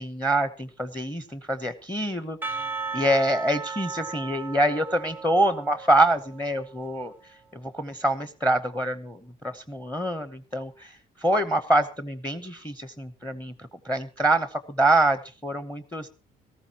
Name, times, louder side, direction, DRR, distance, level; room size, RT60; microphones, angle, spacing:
voice 1, 0.0-2.6 2.9-7.1 7.5-16.1, right 1 dB, 10° left, 11 dB, 0.9 m, -25 dB
Percussion / Church bell, 2.4-7.0, right 4 dB, 10° right, 0.6 m, -36 dB
18.0 x 14.0 x 3.0 m, 0.32 s
cardioid pair, 110°, 17 cm